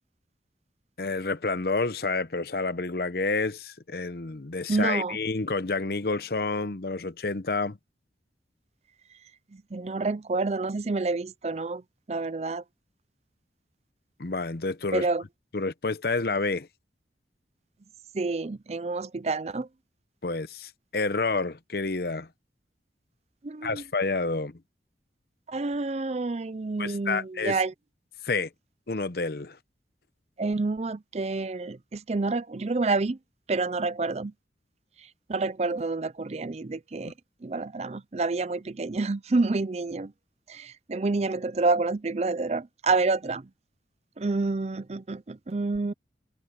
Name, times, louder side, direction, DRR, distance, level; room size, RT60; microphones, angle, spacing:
voice 1, 1.0-7.8 14.2-15.1 15.5-16.7 20.2-22.3 23.6-24.6 26.8-27.6 28.2-28.5 28.9-29.6, left 3 dB, 60° left, 0.8 m, -29 dB
voice 2, 4.7-5.2 9.5-11.8 12.1-12.6 14.9-15.2 18.1-19.7 23.4-23.8 25.5-27.7 30.4-33.2 33.5-34.3 35.3-37.1 37.4-40.1 40.5-43.5 44.2-45.9, right 3 dB, 35° right, 0.5 m, -28 dB
head